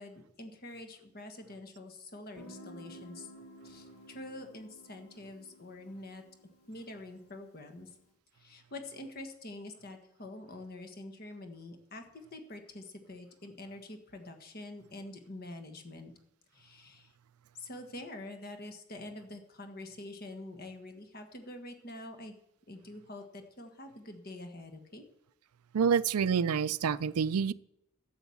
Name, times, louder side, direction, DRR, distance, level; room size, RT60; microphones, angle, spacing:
voice 1, 0.0-3.3 3.6-6.2 6.7-7.9 8.3-16.1 16.5-17.1 17.5-22.3 22.7-25.0, left 2 dB, 45° left, 1.5 m, -46 dB
Guitar, 2.4-7.9, equal, 85° left, 2.0 m, -53 dB
voice 2, 25.7-27.5, right 6 dB, 85° right, 0.4 m, -27 dB
12.0 x 8.1 x 7.1 m
head